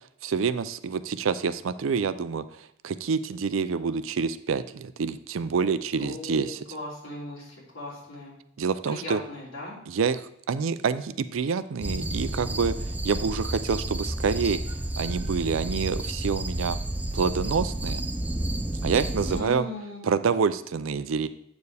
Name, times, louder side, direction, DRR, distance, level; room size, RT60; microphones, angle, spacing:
voice 1, 0.2-6.6 8.6-9.2 9.9-10.2 10.5-14.6 15.0-16.8 17.1-18.0 18.8-19.6 20.0-21.3, right 5 dB, 80° right, 13 dB, 0.5 m, -27 dB
voice 2, 6.0-8.3 8.8-9.8 19.3-20.0, left 1 dB, 80° left, -5 dB, 3.2 m, -38 dB
sound 1, 11.8-19.4, right 1 dB, 10° right, 0.4 m, -31 dB
8.1 x 6.9 x 3.4 m, 0.74 s
head